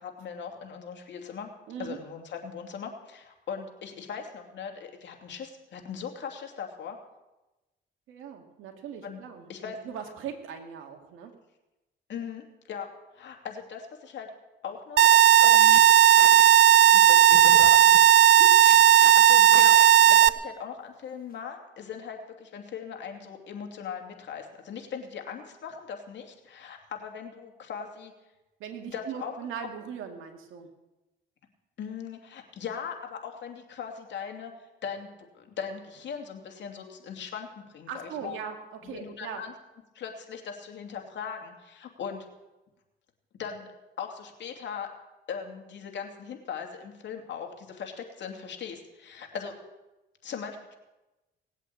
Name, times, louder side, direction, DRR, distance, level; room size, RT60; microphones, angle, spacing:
voice 1, 0.0-1.5 1.8-7.0 9.0-9.2 9.5-9.8 12.1-14.3 14.6-15.8 16.9-17.9 18.9-28.1 28.9-29.3 31.8-34.5 34.8-35.1 35.3-38.4 38.8-39.5 39.9-42.3 43.4-43.7 44.0-44.9 45.3-49.6 50.2-50.8, left 7 dB, 65° left, 3 dB, 2.7 m, -39 dB
voice 2, 1.7-2.0 8.1-11.3 18.4-18.5 18.9-19.0 28.6-30.7 37.9-39.4, right 7 dB, 85° right, 3 dB, 2.2 m, -39 dB
sound 1, 15.0-20.3, right 11 dB, 60° right, 0.6 m, -16 dB
sound 2, 15.3-17.0 17.3-18.1 18.6-19.2 19.5-20.4, left 7 dB, 45° left, 1.2 m, -42 dB
19.0 x 8.3 x 8.6 m, 1.0 s
cardioid pair, 90°, 20 cm